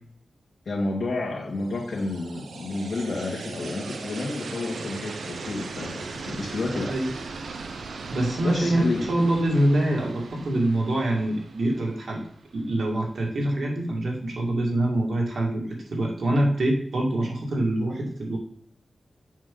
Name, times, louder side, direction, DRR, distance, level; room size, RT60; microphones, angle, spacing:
voice 1, 0.7-6.9 8.4-9.2, left 2 dB, 65° left, -5 dB, 1.7 m, -30 dB
sound 1, 1.6-12.7, right 4 dB, 90° right, 0.9 m, -39 dB
voice 2, 8.1-12.2 12.5-18.4, right 1 dB, 65° right, -1 dB, 2.2 m, -25 dB
7.3 x 6.4 x 3.9 m, 0.67 s
wide cardioid pair, 155°, 0 cm